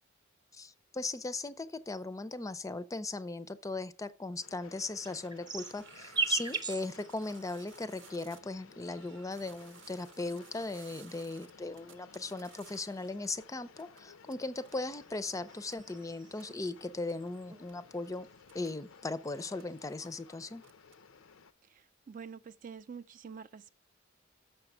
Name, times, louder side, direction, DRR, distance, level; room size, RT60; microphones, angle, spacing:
voice 1, 0.5-18.3 18.5-20.6, left 2 dB, 15° left, 0.5 m, -38 dB
Train, 4.4-21.5, left 5 dB, 85° left, 0.6 m, -57 dB
sound 1, 4.7-8.2 9.1-10.5 11.3-13.2 14.6-16.7 17.1-17.6 17.9-19.0 19.3-20.0, right 4 dB, 20° right, 0.7 m, -40 dB
sound 2, 5.0-8.4 8.7-13.4 13.8-14.3 14.6-14.7 15.2-15.4 15.7-15.8 16.1-16.2 16.4-16.5 17.1-17.3 17.7-17.8 18.4-18.8 19.2-20.1 20.5-20.9, right 8 dB, 70° right, 0.7 m, -57 dB
voice 2, 21.7-23.7, right 6 dB, 40° right, 0.4 m, -47 dB
6.8 x 5.9 x 6.5 m
head